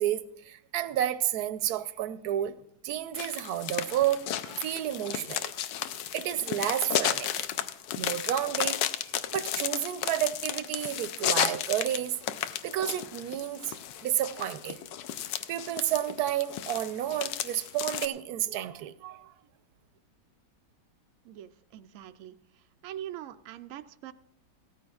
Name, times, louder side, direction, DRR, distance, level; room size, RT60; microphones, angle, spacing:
voice 1, 0.0-2.6 2.8-5.5 6.1-7.3 8.0-8.8 9.3-12.1 12.6-13.8 14.0-14.8 15.5-19.3, right 11 dB, 70° right, 1.0 m, -31 dB
sound 1, 3.1-18.1, left 10 dB, 80° left, 1.3 m, -33 dB
voice 2, 21.2-24.1, right 11 dB, 90° right, 0.7 m, -43 dB
16.5 x 13.5 x 2.3 m
omnidirectional pair, 2.0 m